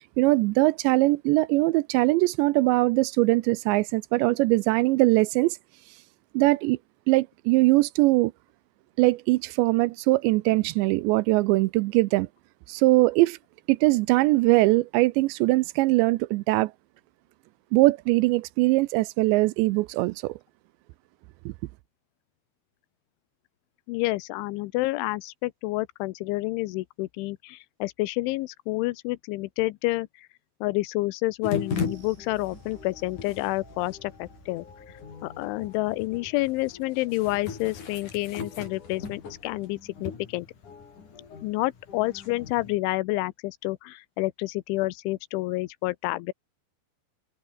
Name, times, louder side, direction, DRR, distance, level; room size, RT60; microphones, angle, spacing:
voice 1, 0.2-5.6 6.3-6.8 7.1-8.3 9.0-12.3 12.7-13.4 13.7-16.7 17.7-20.4 21.5-21.6, right 21 dB, 80° right, 2.7 m, -21 dB
voice 2, 23.9-30.1 30.6-34.7 35.2-40.5 41.4-46.3, left 20 dB, 90° left, 3.2 m, -29 dB
sound 1, 31.4-42.8, left 5 dB, 45° left, 5.3 m, -38 dB
sound 2, 31.7-40.4 40.7-40.9 41.3-41.4, right 6 dB, 65° right, 7.1 m, -57 dB
omnidirectional pair, 5.3 m